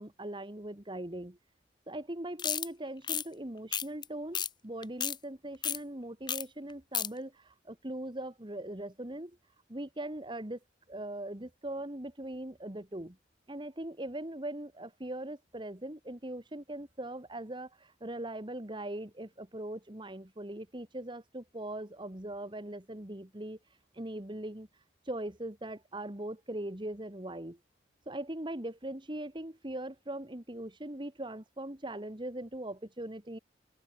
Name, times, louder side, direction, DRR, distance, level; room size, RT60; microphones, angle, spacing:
voice 1, 0.0-1.4 1.9-9.4 9.7-10.6 10.9-13.2 13.5-23.6 23.9-24.7 25.1-27.6 28.1-33.4, right 1 dB, 25° right, 1.8 m, -40 dB
sound 1, 2.4-2.7 3.0-3.2 3.7-4.0 4.3-4.5 4.8-5.2 5.6-5.8 6.3-6.4 6.7-7.1, left 9 dB, 25° left, 0.7 m, -32 dB
open air
head